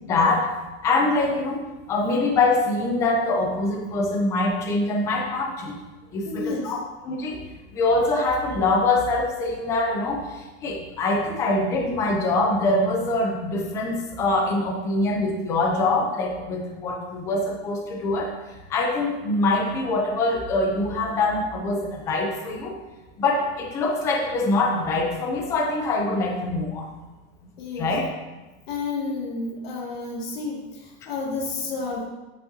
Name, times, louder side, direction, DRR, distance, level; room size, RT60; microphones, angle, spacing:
voice 1, 0.1-0.5 0.8-1.6 1.9-5.8 6.1-6.8 7.0-7.4 7.7-10.2 10.6-18.3 18.7-22.8 23.2-26.9 27.8-28.0, left 2 dB, 10° left, 2 dB, 0.3 m, -24 dB
voice 2, 6.0-6.8 27.6-28.0 28.7-32.0, left 3 dB, 65° left, -1 dB, 1.9 m, -31 dB
8.5 x 6.1 x 2.6 m, 1.1 s
supercardioid pair, 165°, 32 cm